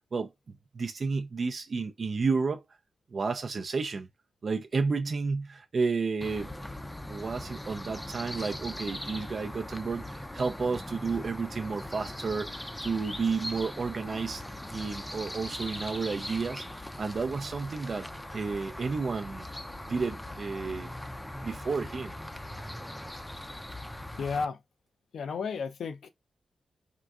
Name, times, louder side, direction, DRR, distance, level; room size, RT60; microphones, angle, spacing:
voice 1, 0.7-2.6 3.1-4.1 4.4-6.5 7.1-14.4 14.7-16.7 17.0-19.5 19.9-20.9 21.4-22.1, right 4 dB, 55° right, 0.4 m, -31 dB
sound 1, 6.2-24.5, left 1 dB, 10° left, 0.5 m, -40 dB
voice 2, 24.2-24.6 25.1-26.1, left 5 dB, 80° left, 0.5 m, -32 dB
3.7 x 2.3 x 2.4 m
cardioid pair, 50°, 0 cm